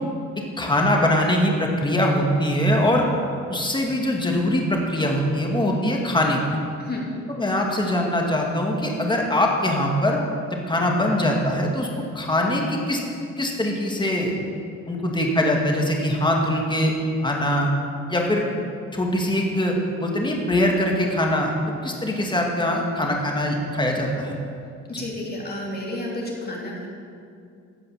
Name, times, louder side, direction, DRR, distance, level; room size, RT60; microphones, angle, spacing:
voice 1, 0.6-3.1 3.5-6.4 7.3-10.2 10.7-11.9 12.1-13.0 13.4-14.3 14.9-16.9 17.2-17.7 18.1-18.4 18.9-21.5 21.8-24.4 24.9-25.0, left 1 dB, 15° left, 0 dB, 2.1 m, -22 dB
voice 2, 25.0-26.9, left 1 dB, 30° left, -3 dB, 3.0 m, -31 dB
15.0 x 5.3 x 7.3 m, 2.4 s
cardioid pair, 90°, 30 cm